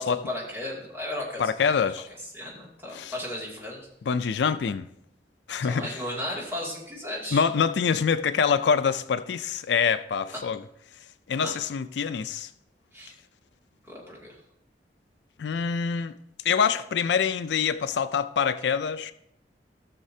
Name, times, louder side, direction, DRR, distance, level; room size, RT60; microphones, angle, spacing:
voice 1, 0.0-1.5 2.3-3.8 5.6-7.4 10.3-10.4 11.4-11.5 12.9-13.1 13.8-14.4, left 1 dB, 15° right, 2.4 m, -35 dB
voice 2, 1.4-2.1 2.9-3.1 4.1-4.9 5.5-5.9 7.3-10.6 11.3-12.5 15.4-16.1 16.4-19.1, left 6 dB, 75° left, 0.4 m, -25 dB
17.0 x 6.5 x 2.7 m
head